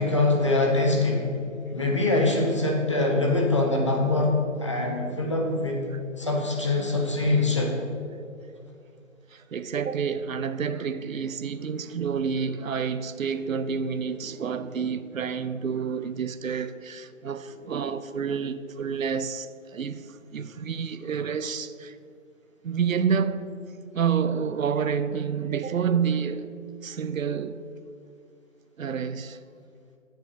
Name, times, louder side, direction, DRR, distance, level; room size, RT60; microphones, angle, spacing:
voice 1, 0.0-1.4 1.7-4.3 4.6-5.8 6.2-7.8, left 2 dB, 25° left, 0.9 m, -23 dB
voice 2, 9.3-22.0 22.6-23.5 23.9-26.5 26.8-27.6 28.8-29.4, right 6 dB, 80° right, 0.7 m, -29 dB
7.1 x 7.1 x 7.6 m
hypercardioid pair, 170°, 40 cm